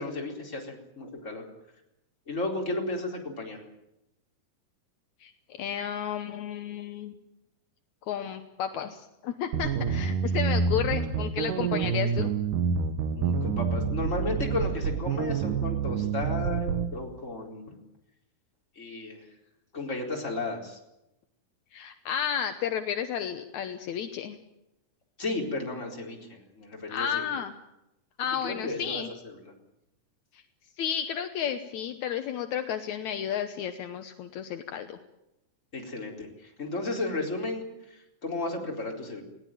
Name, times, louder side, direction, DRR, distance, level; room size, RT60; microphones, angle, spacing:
voice 1, 0.0-1.5 2.3-3.6 13.1-17.8 18.7-19.3 19.7-20.8 25.2-27.3 28.4-29.5 35.7-39.2, left 2 dB, 20° left, 0 dB, 4.1 m, -34 dB
voice 2, 5.2-7.1 8.1-12.3 21.7-24.4 26.9-27.5 28.2-29.1 30.3-30.4 30.8-35.0, left 9 dB, 70° left, 7 dB, 1.8 m, -32 dB
sound 1, 9.5-16.9, right 6 dB, 60° right, 2.6 m, -28 dB
20.5 x 18.0 x 9.1 m, 0.88 s
omnidirectional pair, 4.7 m